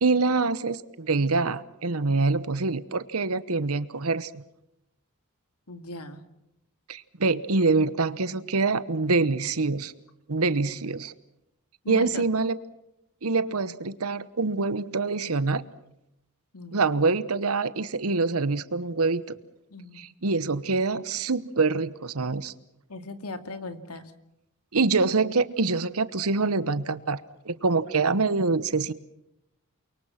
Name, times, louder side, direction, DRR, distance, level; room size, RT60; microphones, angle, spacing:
voice 1, 0.0-4.4 6.9-9.9 10.3-11.1 11.9-12.6 13.2-15.6 16.7-19.2 20.0-22.5 24.7-27.2 27.4-28.9, right 3 dB, 80° right, 15 dB, 1.1 m, -25 dB
voice 2, 5.7-6.2 11.8-12.2 16.5-16.9 19.7-20.1 22.9-24.1, left 2 dB, 85° left, 9 dB, 2.3 m, -38 dB
29.0 x 23.5 x 5.9 m, 0.82 s
head